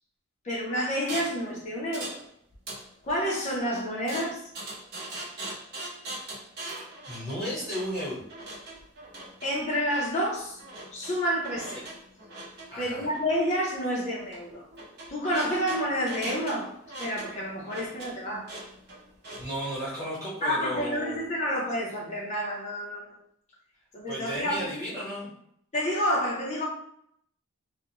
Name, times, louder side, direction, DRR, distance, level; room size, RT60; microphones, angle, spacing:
voice 1, 0.4-2.2 3.0-4.4 9.4-10.6 10.9-11.8 12.8-14.6 15.1-16.7 17.0-18.4 20.4-23.1 23.9-24.7 25.7-26.7, equal, 35° left, -5 dB, 0.5 m, -29 dB
sound 1, 1.1-1.4 1.9-2.2 2.5-3.3 4.1-19.7, right 2 dB, 50° right, 0.8 m, -41 dB
voice 2, 7.1-8.2 11.7-11.8 12.7-13.1 17.8-18.1 19.2-21.2 24.1-25.3, equal, 15° right, -8 dB, 1.1 m, -34 dB
2.4 x 2.0 x 2.8 m, 0.71 s
head